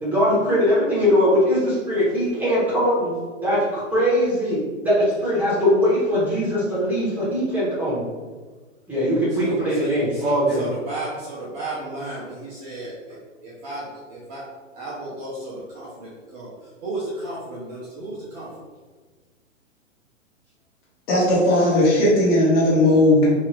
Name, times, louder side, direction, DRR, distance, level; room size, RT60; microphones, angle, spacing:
voice 1, 0.0-3.1 3.4-4.6 4.8-8.0 8.9-10.7, equal, 5° right, -10 dB, 1.2 m, -21 dB
voice 2, 9.3-14.5 14.7-18.6, right 2 dB, 25° right, -7 dB, 0.6 m, -34 dB
voice 3, 21.1-23.3, left 1 dB, 40° left, -6 dB, 1.4 m, -17 dB
2.7 x 2.7 x 3.2 m, 1.4 s
hypercardioid pair, 120°, 39 cm